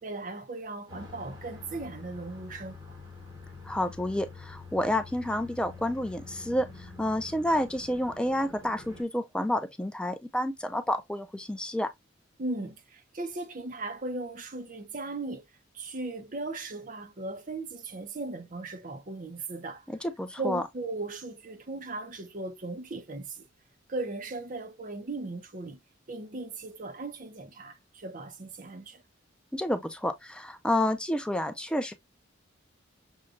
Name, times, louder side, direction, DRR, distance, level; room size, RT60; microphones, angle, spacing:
voice 1, 0.0-2.8 12.4-15.4 15.7-19.9 20.4-23.5 23.9-25.8 26.1-29.0, right 2 dB, 40° right, 0.7 m, -37 dB
sound 1, 0.9-9.0, left 3 dB, 20° right, 1.2 m, -46 dB
voice 2, 3.6-11.9 19.9-20.6 29.5-31.9, left 1 dB, 5° left, 0.3 m, -29 dB
6.3 x 2.3 x 2.5 m
head